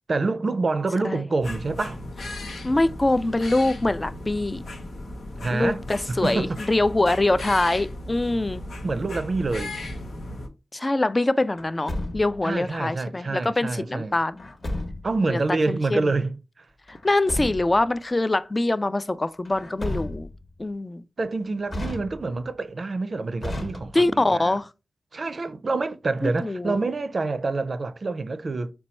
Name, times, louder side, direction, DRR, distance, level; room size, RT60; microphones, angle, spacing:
voice 1, 0.1-2.0 5.4-5.8 6.1-6.6 8.8-9.8 12.4-14.2 15.0-16.7 21.2-24.6 25.1-28.7, right 3 dB, 55° right, 0.4 m, -27 dB
sound 1, 1.4-10.5, left 1 dB, 85° left, 0.7 m, -36 dB
voice 2, 2.3-4.6 5.5-8.6 10.7-14.5 15.3-15.4 15.7-16.1 16.9-20.3 20.6-21.0 23.9-24.7 26.2-26.8, left 2 dB, 30° left, 0.3 m, -24 dB
Truck, 11.6-12.5 14.4-15.2 16.9-17.9 19.5-20.5 21.7-22.5 23.4-24.3, left 1 dB, 55° left, 1.0 m, -33 dB
4.1 x 2.3 x 4.2 m
cardioid pair, 50°, 0 cm